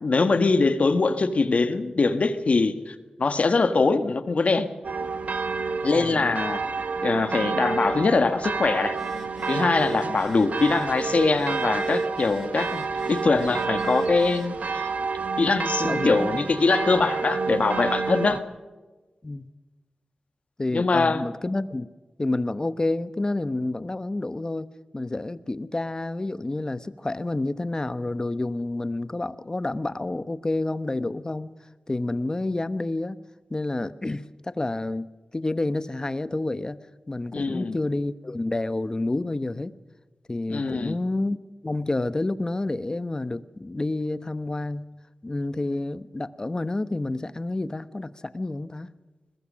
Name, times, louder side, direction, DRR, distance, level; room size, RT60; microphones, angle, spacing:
voice 1, 0.0-4.7 5.8-6.6 7.0-9.0 9.5-14.9 15.4-18.4 20.7-21.2 37.3-37.7 40.5-41.0, left 3 dB, 60° left, 1.6 m, -23 dB
sound 1, 4.8-18.4, right 4 dB, 75° right, 1.3 m, -29 dB
voice 2, 5.9-6.3 15.8-16.5 18.3-18.4 19.2-19.5 20.6-21.9 22.2-31.5 31.9-33.2 33.5-35.1 35.3-39.7 40.3-41.4 41.6-44.9 45.2-48.9, left 2 dB, 30° left, 1.0 m, -29 dB
Telephone, 8.9-14.5, left 1 dB, 5° left, 4.5 m, -47 dB
22.0 x 20.5 x 6.3 m
wide cardioid pair, 75°, 2 cm